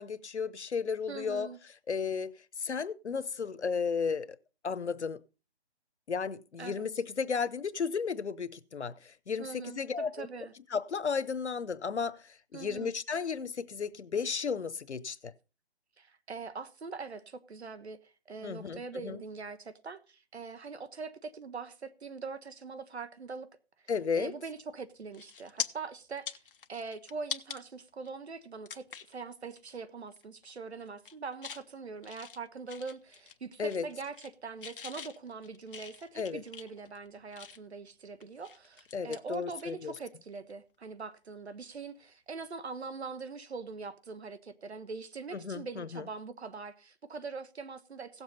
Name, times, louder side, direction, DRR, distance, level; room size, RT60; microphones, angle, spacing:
voice 1, 0.0-1.5 1.9-4.4 4.6-5.2 6.1-10.3 10.7-15.3 18.4-19.2 23.9-24.3 33.6-33.8 36.2-36.4 38.9-39.9 45.3-46.1, left 5 dB, 90° left, 0.9 m, -34 dB
voice 2, 1.1-1.6 6.6-6.9 9.4-10.5 12.5-12.9 16.0-23.5 24.1-26.4 26.7-48.2, right 4 dB, 75° right, 1.4 m, -42 dB
sound 1, 24.6-24.8 25.1-25.7 26.1-27.6 28.1-28.2 28.7-29.2 29.6-29.8 30.1-30.5 30.9-31.6 32.0-33.4 33.6-34.3 34.6-37.8 38.2-40.0 40.3-40.5 42.4-42.6, left 6 dB, 55° left, 0.8 m, -43 dB
16.5 x 7.3 x 4.0 m
figure-of-eight pair, 160°, 33 cm